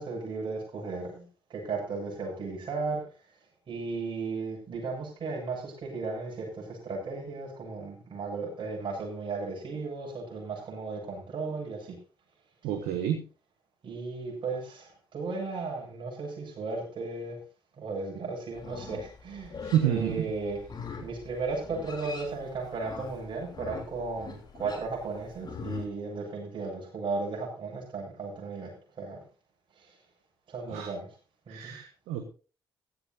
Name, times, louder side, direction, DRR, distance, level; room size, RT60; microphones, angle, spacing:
voice 1, 0.0-3.0 3.7-12.0 13.8-17.4 17.8-20.7 21.0-29.2 29.8-30.0 30.5-31.1 31.5-31.8, right 3 dB, 45° right, -1 dB, 7.5 m, -35 dB
voice 2, 12.6-13.2 19.6-20.2 30.7-30.9 31.5-32.3, right 10 dB, 65° right, 6 dB, 1.3 m, -29 dB
Livestock farm animals working animals, 18.5-25.9, left 5 dB, 35° left, 3.4 m, -43 dB
15.5 x 13.5 x 2.8 m, 0.34 s
figure-of-eight pair, 45°, 12 cm